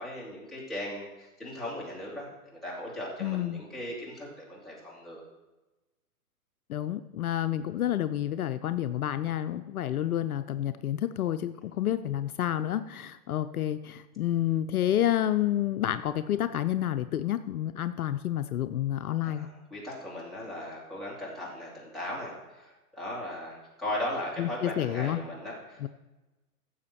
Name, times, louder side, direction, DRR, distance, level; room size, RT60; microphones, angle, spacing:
voice 1, 0.0-5.2 19.2-25.9, left 1 dB, ahead, -7 dB, 2.6 m, -38 dB
voice 2, 3.2-3.6 6.7-19.5 24.4-25.2 25.8-25.9, left 12 dB, 65° left, 10 dB, 0.6 m, -29 dB
15.5 x 7.1 x 4.3 m, 1.1 s
hypercardioid pair, 140°, 46 cm